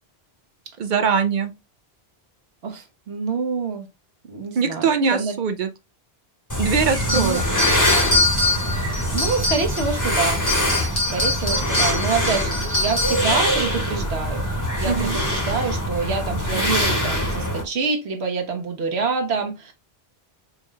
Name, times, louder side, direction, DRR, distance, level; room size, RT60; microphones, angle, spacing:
voice 1, 0.8-1.5 4.6-5.7 6.6-7.4 14.8-15.2, right 5 dB, 60° right, 0.6 m, -22 dB
voice 2, 2.6-3.9 4.3-5.4 7.1-7.4 9.1-10.4 11.1-14.5 14.8-19.7, right 4 dB, 85° right, 1.3 m, -26 dB
sound 1, 6.5-17.6, equal, 15° left, 1.5 m, -23 dB
sound 2, 7.1-10.0 10.3-13.3, left 2 dB, 75° left, 1.9 m, -24 dB
5.3 x 3.1 x 2.2 m
omnidirectional pair, 1.1 m